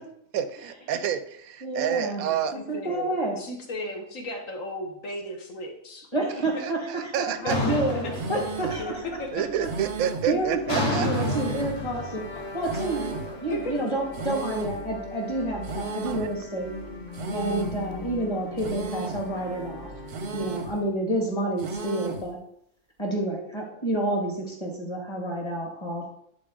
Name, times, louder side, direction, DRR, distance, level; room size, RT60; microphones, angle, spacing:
voice 1, 0.3-2.5 6.3-7.6 8.6-8.8 9.3-11.3 16.0-16.4, right 9 dB, 75° right, 11 dB, 1.0 m, -29 dB
voice 2, 1.6-2.2 2.7-3.4 6.1-8.8 9.6-9.7 10.3-12.2 12.5-16.7 17.3-19.9 20.3-22.4 23.0-26.1, right 1 dB, 20° left, 0 dB, 1.7 m, -29 dB
voice 3, 2.2-6.1 6.5-6.6 7.3-8.1 8.8-9.4 10.3-10.4 13.5-13.8, left 1 dB, 60° left, 3 dB, 1.7 m, -35 dB
sound 1, 7.5-9.0 9.3-9.8 10.7-13.7, left 1 dB, 85° left, 2.8 m, -30 dB
sound 2, 8.1-20.9, left 2 dB, 35° left, 1.0 m, -41 dB
sound 3, 8.1-8.8 9.6-10.4 11.1-11.9 12.6-13.3 14.1-14.8 15.6-16.3 17.1-17.8 18.6-19.3 20.1-20.8 21.6-22.3, right 4 dB, 50° right, 0.8 m, -34 dB
10.5 x 4.0 x 3.7 m, 0.70 s
omnidirectional pair, 1.6 m